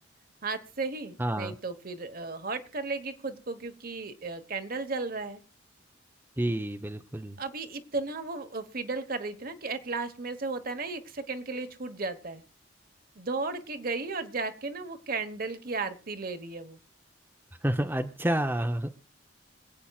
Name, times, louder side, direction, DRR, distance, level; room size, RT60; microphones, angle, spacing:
voice 1, 0.4-5.4 7.4-12.4 13.1-16.8, right 3 dB, 50° right, 8 dB, 1.2 m, -35 dB
voice 2, 1.2-1.6 6.4-7.4 17.6-18.9, right 1 dB, 10° right, 5 dB, 0.7 m, -29 dB
26.5 x 8.8 x 2.4 m, 0.35 s
head